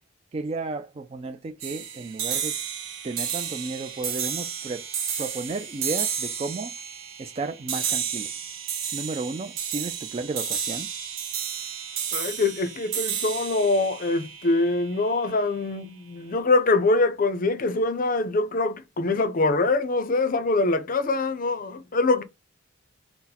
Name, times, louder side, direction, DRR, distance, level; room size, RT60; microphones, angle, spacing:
voice 1, 0.3-2.5 3.0-4.8 5.2-6.7 7.2-8.3 8.9-10.9, right 3 dB, 30° right, 0.3 m, -33 dB
sound 1, 1.6-15.1, right 8 dB, 80° right, 0.8 m, -32 dB
voice 2, 12.1-22.2, left 3 dB, 45° left, 0.5 m, -24 dB
3.9 x 2.0 x 4.1 m
head